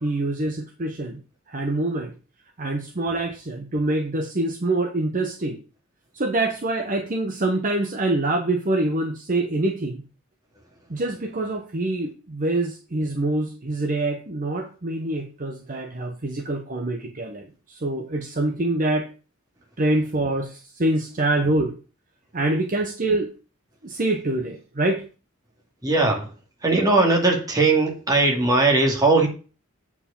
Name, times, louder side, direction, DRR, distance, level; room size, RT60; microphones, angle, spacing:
voice 1, 0.0-1.2 1.5-2.1 2.6-5.6 6.1-10.0 10.9-19.1 19.8-21.7 22.3-23.3 23.8-25.0, right 2 dB, 40° right, 4 dB, 0.9 m, -25 dB
voice 2, 25.8-26.3 26.6-29.3, right 3 dB, 15° right, 0 dB, 2.3 m, -19 dB
8.1 x 4.8 x 6.9 m, 0.36 s
head